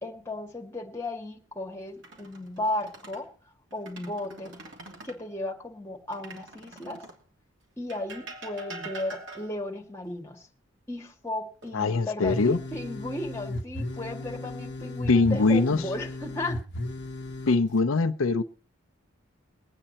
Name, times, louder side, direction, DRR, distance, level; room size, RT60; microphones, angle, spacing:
voice 1, 0.0-3.3 3.7-4.5 5.0-7.0 7.8-10.5 10.9-16.6, left 2 dB, 10° left, 2 dB, 2.2 m, -35 dB
sound 1, 1.9-3.3 3.7-5.2 6.1-7.3 7.9-9.7 11.6-12.3 12.7-12.9 15.8-16.4 17.2-17.8, right 2 dB, 60° right, 2.9 m, -45 dB
voice 2, 11.7-12.6 15.1-15.8 17.5-18.4, left 3 dB, 80° left, 7 dB, 0.6 m, -22 dB
sound 2, 12.2-17.6, left 1 dB, 55° left, 1.0 m, -35 dB
22.5 x 8.9 x 4.2 m, 0.38 s
head